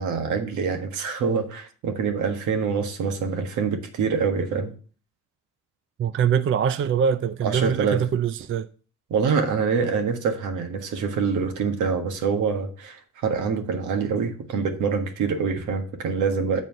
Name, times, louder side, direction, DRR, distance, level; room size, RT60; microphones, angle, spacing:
voice 1, 0.0-4.7 7.4-8.0 9.1-16.6, right 5 dB, 80° right, 1.5 m, -25 dB
voice 2, 6.0-8.7, right 8 dB, 45° right, 0.5 m, -23 dB
7.5 x 4.1 x 6.5 m
cardioid pair, 90°, 30 cm